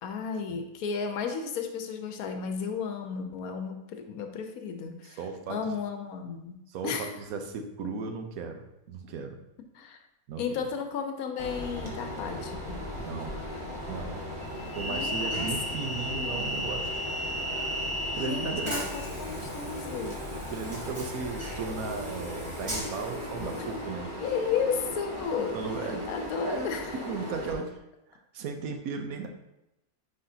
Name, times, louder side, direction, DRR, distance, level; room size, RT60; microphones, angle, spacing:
voice 1, 0.0-5.2 5.5-6.6 6.8-7.2 9.7-10.0 10.4-12.9 14.8-15.5 15.8-16.5 18.1-20.2 24.2-26.9, left 6 dB, 90° left, 5 dB, 1.2 m, -34 dB
voice 2, 5.0-5.6 6.7-9.4 10.3-10.4 13.1-13.3 13.9-16.9 18.1-18.8 20.5-24.1 25.5-26.1 26.4-26.8 27.0-27.8 28.1-29.3, right 5 dB, 80° right, 5 dB, 1.2 m, -36 dB
Train, 11.4-27.5, equal, 20° right, 1.3 m, -35 dB
9.3 x 3.9 x 2.7 m, 0.90 s
omnidirectional pair, 1.5 m